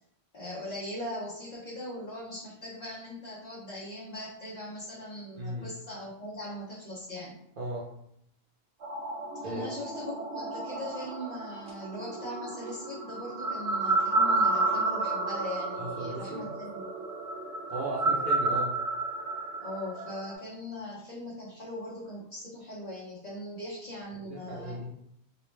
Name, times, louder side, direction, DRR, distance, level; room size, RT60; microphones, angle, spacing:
voice 1, 0.3-7.3 9.4-16.8 19.6-24.8, left 1 dB, 45° left, -7 dB, 0.7 m, -40 dB
voice 2, 5.4-5.7 7.6-7.9 9.4-9.6 15.8-16.5 17.7-18.8 24.2-24.9, right 1 dB, 60° right, -6 dB, 0.7 m, -36 dB
sound 1, 8.8-20.3, right 2 dB, 80° right, 0.9 m, -31 dB
2.4 x 2.1 x 3.1 m, 0.74 s
omnidirectional pair, 1.1 m